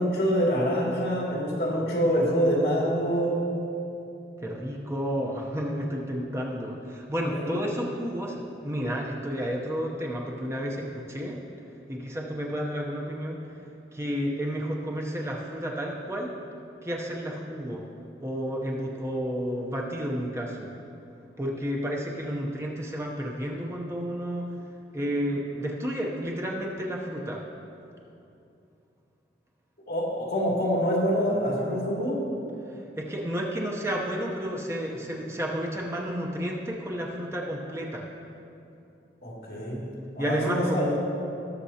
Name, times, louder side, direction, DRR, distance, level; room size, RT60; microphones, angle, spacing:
voice 1, 0.0-3.3 7.3-7.6 29.9-32.2 39.2-39.9 40.2-41.0, equal, 65° left, -4 dB, 2.4 m, -26 dB
voice 2, 4.4-11.4 11.9-13.4 13.9-16.3 16.8-17.8 18.2-20.7 21.4-24.4 24.9-27.4 32.7-38.1 40.2-41.0, equal, 15° right, -1 dB, 0.7 m, -31 dB
18.5 x 6.7 x 2.8 m, 2.7 s
head